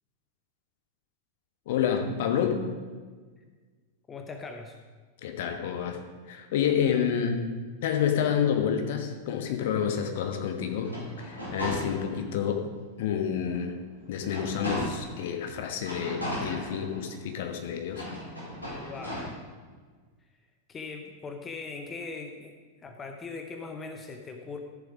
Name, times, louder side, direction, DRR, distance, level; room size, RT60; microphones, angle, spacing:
voice 1, 1.7-2.6 5.2-6.0 6.3-7.4 7.8-12.7 13.0-13.7 14.1-18.0, left 8 dB, 55° left, 5 dB, 1.2 m, -29 dB
voice 2, 4.1-4.8 18.7-19.4 20.7-22.6 22.8-24.6, left 4 dB, 20° left, 5 dB, 0.9 m, -40 dB
sound 1, 10.7-12.4 12.9-13.0 13.5-15.2 15.8-17.3 17.9-19.2, equal, 85° left, 3.8 m, -36 dB
13.5 x 7.2 x 4.9 m, 1.4 s
figure-of-eight pair, 90°, 0 cm